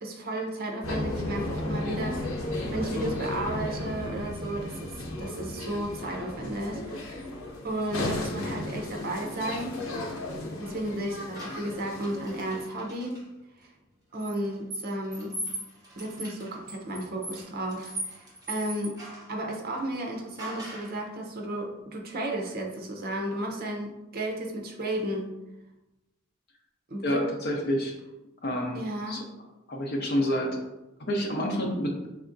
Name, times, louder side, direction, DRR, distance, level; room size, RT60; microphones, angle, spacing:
voice 1, 0.0-7.3 7.6-9.8 10.6-13.2 13.6-13.7 14.1-15.3 16.0-19.0 19.3-25.3 26.9-27.3 28.7-29.2, right 1 dB, 50° right, 1 dB, 0.7 m, -33 dB
sound 1, 0.8-12.6, left 1 dB, 80° left, 0.8 m, -34 dB
sound 2, 11.3-13.2 14.2-19.3 20.4-21.0, right 1 dB, 20° right, 1.2 m, -40 dB
voice 2, 27.0-27.9 28.4-28.8 29.1-29.2 29.7-30.6 31.0-32.0, equal, 50° left, 1 dB, 0.8 m, -28 dB
5.2 x 3.5 x 2.6 m, 0.97 s
head